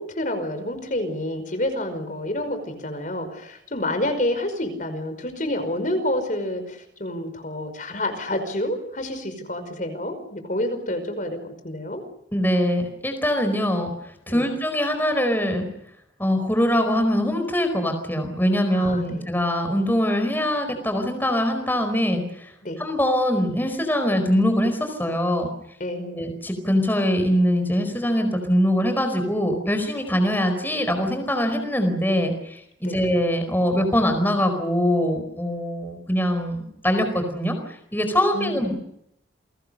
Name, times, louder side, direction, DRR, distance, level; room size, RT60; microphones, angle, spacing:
voice 1, 0.0-12.0 14.3-14.5 18.7-19.3 22.6-22.8 25.8-26.2 32.8-33.0 38.3-38.7, left 1 dB, 45° left, 8 dB, 5.3 m, -28 dB
voice 2, 12.3-15.7 16.2-22.5 22.8-25.5 26.1-37.0 37.3-38.7, equal, 10° left, 6 dB, 4.6 m, -23 dB
29.5 x 23.0 x 6.6 m, 0.76 s
head